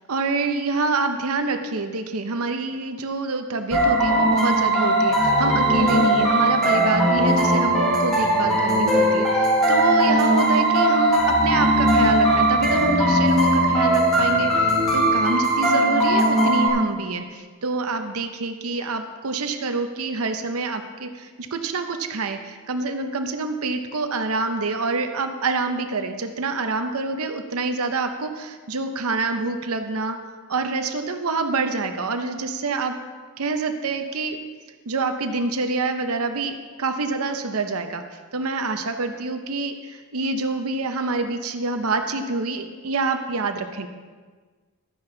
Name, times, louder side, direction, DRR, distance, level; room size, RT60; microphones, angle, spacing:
voice 1, 0.1-30.2 30.5-33.0 33.4-34.4 34.9-38.0 38.3-43.9, right 3 dB, 80° right, 6 dB, 0.8 m, -27 dB
sound 1, 3.7-16.7, right 1 dB, ahead, 3.0 m, -19 dB
12.0 x 9.9 x 3.9 m, 1.4 s
head